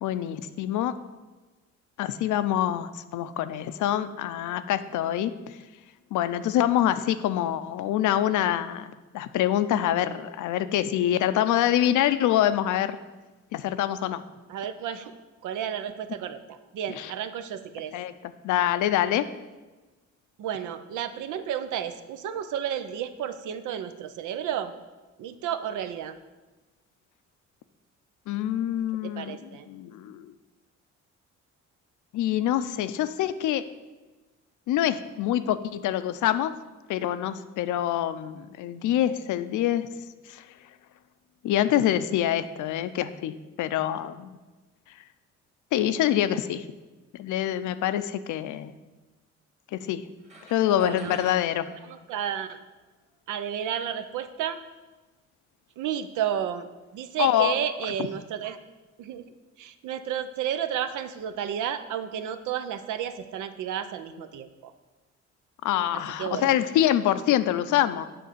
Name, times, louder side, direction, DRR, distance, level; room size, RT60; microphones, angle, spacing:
voice 1, 0.0-0.9 2.0-5.6 6.1-13.0 13.5-14.2 17.0-17.1 17.9-19.3 28.3-29.4 29.7-30.3 32.1-33.6 34.7-36.5 36.9-39.9 40.3-40.4 41.4-44.4 45.7-46.6 47.1-48.7 49.7-50.0 50.5-51.7 57.2-57.5 65.6-68.1, left 11 dB, 75° left, 12 dB, 0.5 m, -25 dB
voice 2, 14.5-17.9 20.4-24.7 25.2-26.2 29.0-29.7 50.8-51.2 51.8-52.6 53.3-54.6 55.8-56.7 56.9-58.6 59.0-59.3 59.6-64.7 65.9-66.5, right 9 dB, 80° right, 10 dB, 0.6 m, -32 dB
sound 1, 50.2-52.9, right 2 dB, 20° right, 1.6 m, -49 dB
7.8 x 3.8 x 6.7 m, 1.2 s
cardioid pair, 90°, 30 cm